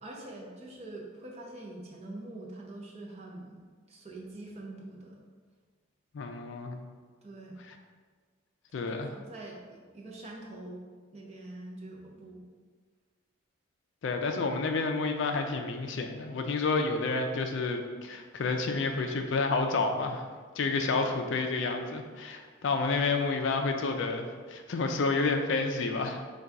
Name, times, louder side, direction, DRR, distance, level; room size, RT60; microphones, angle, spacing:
voice 1, 0.0-3.6 3.9-5.2 7.2-7.6 8.7-10.8 11.1-12.4, right 2 dB, 30° right, -2 dB, 0.6 m, -44 dB
voice 2, 6.1-6.8 8.7-9.1 14.0-20.2 20.6-26.2, left 3 dB, 60° left, 5 dB, 0.4 m, -30 dB
3.9 x 2.3 x 4.6 m, 1.5 s
head